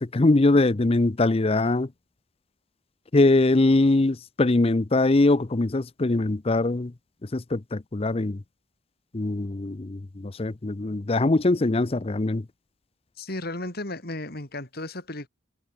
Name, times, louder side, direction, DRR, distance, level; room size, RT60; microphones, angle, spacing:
voice 1, 0.0-1.9 3.1-6.9 7.2-8.4 9.1-12.5, left 2 dB, 30° left, 0.6 m, -22 dB
voice 2, 13.2-15.3, left 2 dB, 50° left, 3.7 m, -34 dB
head